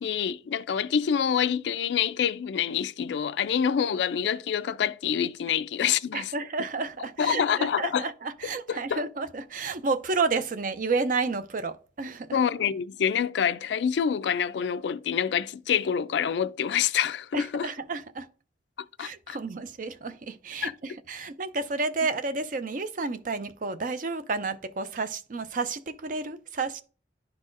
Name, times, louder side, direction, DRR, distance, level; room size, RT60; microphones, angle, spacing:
voice 1, 0.0-6.3 7.2-8.0 8.7-9.0 12.3-17.7 19.0-19.4 20.6-20.7, left 8 dB, 80° left, 0.4 m, -26 dB
voice 2, 6.1-12.4 17.3-18.3 19.0-26.8, right 4 dB, 50° right, 0.5 m, -31 dB
11.5 x 4.0 x 2.5 m
head